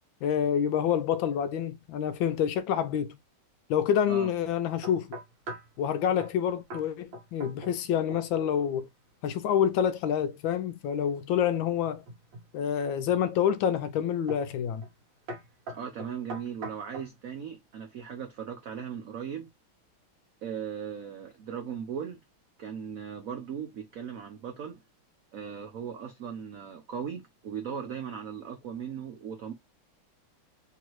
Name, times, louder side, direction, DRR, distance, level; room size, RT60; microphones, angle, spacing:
voice 1, 0.2-3.2 3.7-5.1 5.8-8.9 9.2-12.0 12.5-14.8, left 9 dB, 75° left, 1.2 m, -27 dB
sound 1, 4.8-5.8 6.2-6.4 6.7-6.9 7.1-7.8 8.1-8.5 11.8-12.5 13.1-13.5 14.3-14.5 14.8-15.0 15.3-17.1, right 1 dB, 65° right, 1.7 m, -41 dB
voice 2, 15.7-19.5 20.4-22.2 22.6-24.8 25.3-29.5, right 8 dB, 80° right, 0.7 m, -38 dB
3.9 x 2.8 x 3.0 m
omnidirectional pair, 2.3 m